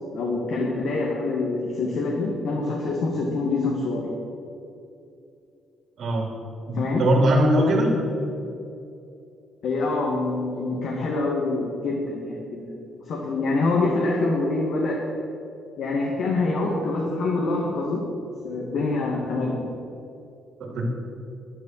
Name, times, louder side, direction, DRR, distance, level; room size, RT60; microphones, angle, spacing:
voice 1, 0.1-4.1 6.7-7.0 9.6-12.6 13.1-15.0 15.8-18.0 18.4-19.6, left 3 dB, 70° left, -2 dB, 2.0 m, -25 dB
voice 2, 6.0-6.3 6.6-7.9 20.6-20.9, right 1 dB, 65° right, -1 dB, 3.0 m, -21 dB
11.0 x 9.9 x 7.5 m, 2.7 s
cardioid pair, 90°, 0 cm